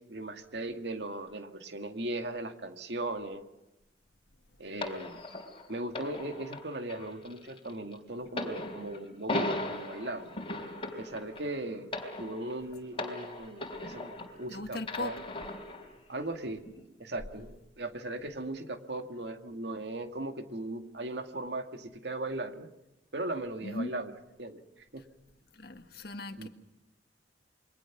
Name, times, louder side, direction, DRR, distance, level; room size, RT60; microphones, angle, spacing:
voice 1, 0.1-3.4 4.6-5.2 5.7-10.4 11.0-15.2 16.1-16.6 17.0-22.7 23.1-24.1 24.4-25.0 26.4-26.5, right 2 dB, 70° right, 2.1 m, -38 dB
sound 1, 4.8-14.5 14.8-15.9 16.7-16.8, left 2 dB, 30° left, 4.0 m, -38 dB
voice 2, 14.5-15.1 23.6-23.9 25.6-26.5, left 2 dB, 55° left, 1.8 m, -38 dB
28.5 x 23.0 x 6.1 m
head